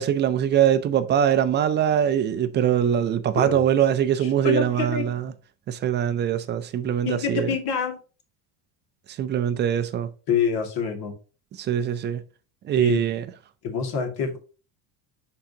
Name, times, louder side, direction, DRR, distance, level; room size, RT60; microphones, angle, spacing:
voice 1, 0.0-5.3 5.7-7.5 9.1-10.1 11.6-12.2 12.6-13.3, right 9 dB, 25° right, 0.3 m, -22 dB
voice 2, 4.2-5.1 7.0-8.0 10.3-11.1 12.8-13.1 13.6-14.4, left 6 dB, 55° left, 2.1 m, -26 dB
10.0 x 3.8 x 2.8 m
cardioid pair, 145°, 45 cm